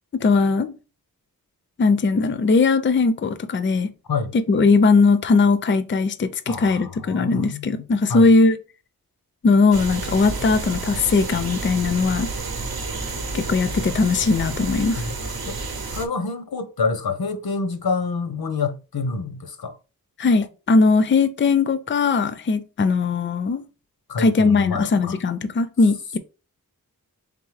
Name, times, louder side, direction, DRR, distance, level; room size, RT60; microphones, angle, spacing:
voice 1, 0.1-0.7 1.8-3.9 4.3-8.6 9.4-12.3 13.3-15.0 20.2-23.6 24.2-26.2, left 4 dB, 35° left, 0.4 m, -19 dB
voice 2, 6.5-7.8 8.1-8.3 15.0-15.2 15.5-15.6 15.9-19.7 24.1-25.2, left 4 dB, 80° left, 0.7 m, -27 dB
sound 1, 9.7-16.1, right 3 dB, 80° right, 0.8 m, -30 dB
3.6 x 3.6 x 3.2 m
wide cardioid pair, 60°, 36 cm